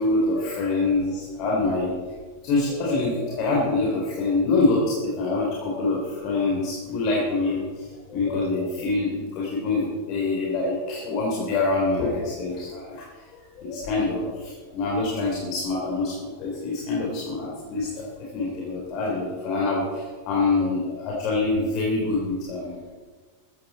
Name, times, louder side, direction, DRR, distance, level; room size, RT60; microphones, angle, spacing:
voice 1, 0.0-1.9 2.4-13.3 13.6-17.9 18.2-22.8, left 3 dB, 40° left, -4 dB, 4.1 m, -25 dB
15.5 x 15.0 x 4.4 m, 1.4 s
figure-of-eight pair, 90°, 0 cm